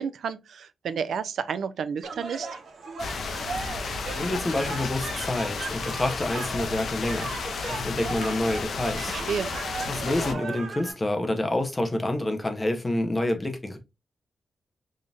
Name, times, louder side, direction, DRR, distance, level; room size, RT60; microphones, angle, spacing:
voice 1, 0.0-2.5 9.1-9.5, right 7 dB, 85° right, 0.3 m, -31 dB
sound 1, 2.0-10.9, right 4 dB, 70° right, 1.0 m, -37 dB
sound 2, 3.0-10.3, left 4 dB, 65° left, 0.5 m, -33 dB
voice 2, 4.2-7.4 7.7-9.2 9.9-13.8, left 1 dB, 15° left, 0.6 m, -28 dB
4.9 x 2.7 x 2.3 m
wide cardioid pair, 175°, 0 cm